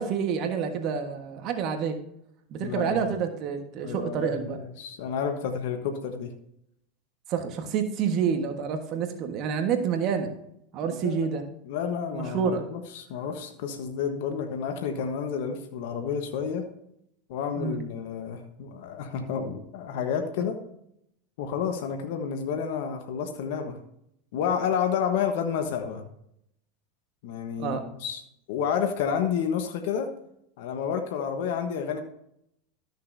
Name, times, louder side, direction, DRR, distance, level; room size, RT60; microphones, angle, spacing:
voice 1, 0.0-2.0 2.5-4.6 7.3-10.3 10.7-11.4 12.1-12.7 17.6-17.8 27.6-27.8, right 7 dB, 50° right, 5 dB, 1.4 m, -28 dB
voice 2, 2.6-3.0 3.8-6.3 10.8-11.3 11.7-16.6 17.3-20.6 21.4-23.8 24.3-26.0 27.2-28.2 28.5-30.1 30.6-32.0, left 7 dB, 70° left, 6 dB, 1.2 m, -30 dB
13.5 x 6.6 x 2.7 m, 0.76 s
hypercardioid pair, 100°, 0 cm